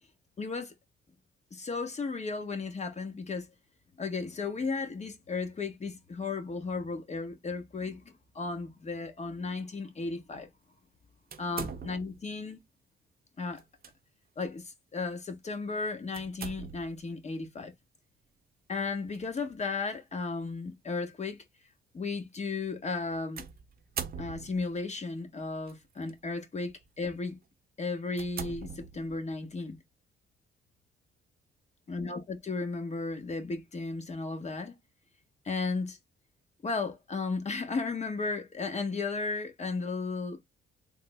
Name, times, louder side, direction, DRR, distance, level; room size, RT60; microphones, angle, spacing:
voice 1, 0.4-0.7 1.5-3.5 4.0-8.0 8.3-10.5 11.4-12.6 13.4-13.6 14.4-17.7 18.7-21.4 21.9-23.5 24.2-27.4 27.8-29.8 31.9-34.7 35.4-36.0 36.6-40.4, left 4 dB, 35° left, 1.1 m, -34 dB
sound 1, 11.3-12.3 13.6-13.9 14.4-14.5 16.1-17.0 19.1-19.4 20.2-20.3 23.4-24.8 25.7-26.1 26.7-26.9 27.4-27.5 28.1-29.3, right 7 dB, 50° right, 0.7 m, -41 dB
3.5 x 2.0 x 3.4 m
cardioid pair, 90°, 20 cm